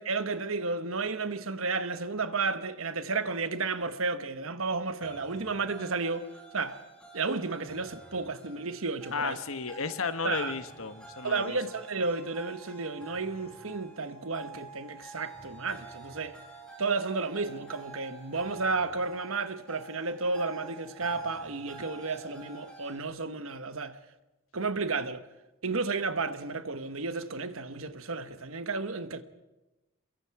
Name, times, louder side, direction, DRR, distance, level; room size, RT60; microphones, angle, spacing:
voice 1, 0.0-6.3 6.5-6.8 7.1-9.4 10.2-10.5 11.2-16.4 16.8-24.0 24.5-25.2 25.6-29.2, right 4 dB, 75° right, 1.2 m, -32 dB
sound 1, 5.0-23.0, right 3 dB, 5° left, 5.5 m, -49 dB
voice 2, 9.1-11.6, left 4 dB, 75° left, 1.2 m, -33 dB
29.0 x 22.5 x 4.8 m
head